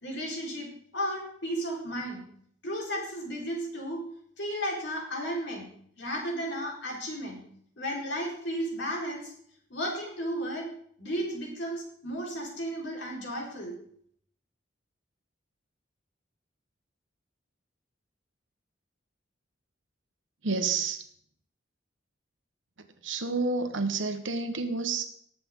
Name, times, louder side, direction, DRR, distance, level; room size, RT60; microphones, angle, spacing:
voice 1, 0.0-2.3 2.6-4.0 4.4-5.7 6.0-7.4 7.8-9.3 9.7-10.7 11.0-13.8, equal, 70° left, -2 dB, 4.5 m, -34 dB
voice 2, 20.4-21.0 23.0-25.1, right 4 dB, 85° right, 8 dB, 1.4 m, -29 dB
19.0 x 7.8 x 3.8 m, 0.63 s
head